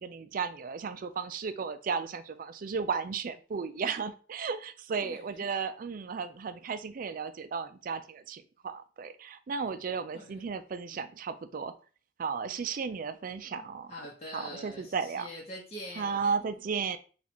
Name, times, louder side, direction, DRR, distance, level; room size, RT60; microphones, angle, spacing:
voice 1, 0.0-11.7 12.2-13.9 14.3-15.3 16.0-17.0, right 5 dB, 50° right, 12 dB, 0.4 m, -34 dB
voice 2, 4.9-5.5 10.1-10.5 13.9-16.3, equal, 35° left, -4 dB, 0.9 m, -44 dB
4.2 x 2.4 x 4.3 m, 0.38 s
head